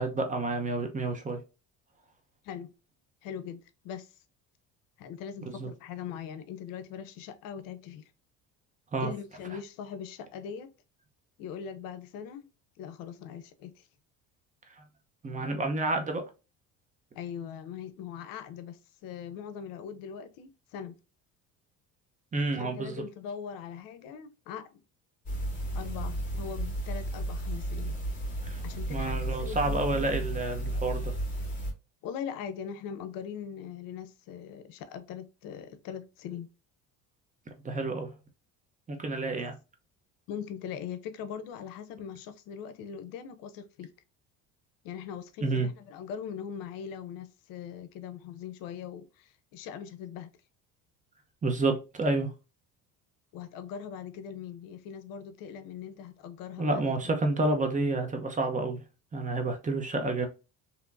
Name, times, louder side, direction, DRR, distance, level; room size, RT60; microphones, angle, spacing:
voice 1, 0.0-1.4 5.5-5.7 8.9-9.1 15.2-16.2 22.3-23.0 28.4-28.6 28.9-31.1 37.6-38.1 38.9-39.6 45.4-45.7 51.4-52.3 56.6-58.8 59.1-60.3, right 2 dB, 20° right, 0.8 m, -29 dB
voice 2, 3.2-4.1 5.0-8.0 9.0-10.7 11.4-12.5 12.8-13.9 17.1-20.9 22.6-24.8 25.7-28.0 28.6-30.2 32.0-36.5 39.3-39.4 40.3-43.9 44.8-50.3 53.3-56.9, left 8 dB, 80° left, 0.6 m, -41 dB
sound 1, 25.2-31.7, right 1 dB, 25° left, 2.0 m, -33 dB
3.4 x 2.9 x 2.5 m
cardioid pair, 115°, 33 cm